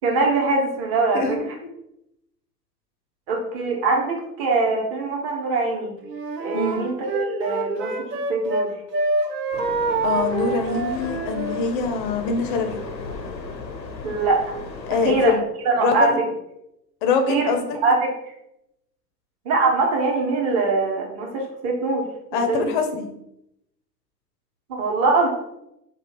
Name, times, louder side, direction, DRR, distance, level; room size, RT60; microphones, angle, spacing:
voice 1, 0.0-1.4 3.3-5.9 6.4-8.7 14.0-14.6 15.0-15.3 15.6-16.2 17.3-17.5 17.8-18.1 19.4-22.0 22.3-22.7 24.7-25.3, right 3 dB, 40° right, 0 dB, 1.1 m, -22 dB
Wind instrument woodwind instrument, 6.1-8.7 8.9-11.7, right 3 dB, 70° right, 0.8 m, -26 dB
voice 2, 6.5-6.8 10.0-12.8 14.9-15.4 15.8-16.2 17.0-17.8 22.3-23.1, left 5 dB, 35° left, 6 dB, 0.4 m, -24 dB
sound 1, 9.5-15.3, left 4 dB, 90° left, 0.6 m, -35 dB
3.0 x 2.4 x 4.3 m, 0.82 s
figure-of-eight pair, 90°, 50 cm